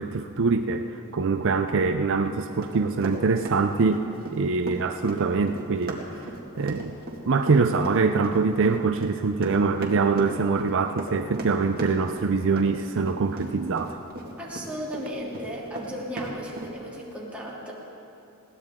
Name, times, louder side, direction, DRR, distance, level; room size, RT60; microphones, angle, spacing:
voice 1, 0.0-4.0 4.3-6.0 6.6-6.9 7.3-14.0, right 4 dB, 60° right, 7 dB, 0.5 m, -24 dB
Run, 2.6-15.0 15.3-16.7, right 1 dB, 45° right, 2.0 m, -37 dB
voice 2, 14.4-17.7, equal, 5° right, -6 dB, 2.9 m, -35 dB
21.0 x 16.5 x 3.7 m, 2.7 s
head